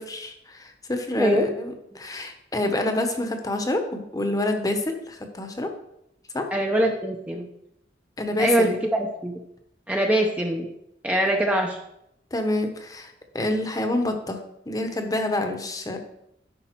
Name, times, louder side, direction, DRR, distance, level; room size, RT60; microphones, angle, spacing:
voice 1, 0.0-5.7 6.3-6.4 8.2-8.8 12.3-14.4 14.7-16.0, left 1 dB, 20° left, 5 dB, 0.9 m, -27 dB
voice 2, 1.2-1.5 6.5-7.5 8.4-9.4 9.9-10.7 11.0-11.8, right 1 dB, 10° right, 2 dB, 0.6 m, -23 dB
10.0 x 5.2 x 4.5 m, 0.80 s
head